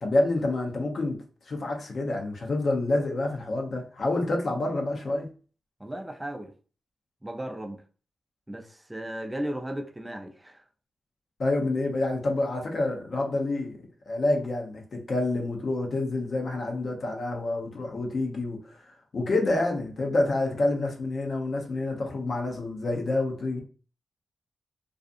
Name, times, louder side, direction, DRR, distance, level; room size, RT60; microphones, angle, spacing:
voice 1, 0.0-1.2 1.5-5.3 11.4-13.7 14.1-18.8 19.1-23.6, left 2 dB, 60° left, 0.7 m, -28 dB
voice 2, 5.8-6.5 7.2-7.8 8.5-10.6, right 1 dB, 20° right, 0.5 m, -35 dB
2.4 x 2.4 x 2.5 m
supercardioid pair, 40°, 0 cm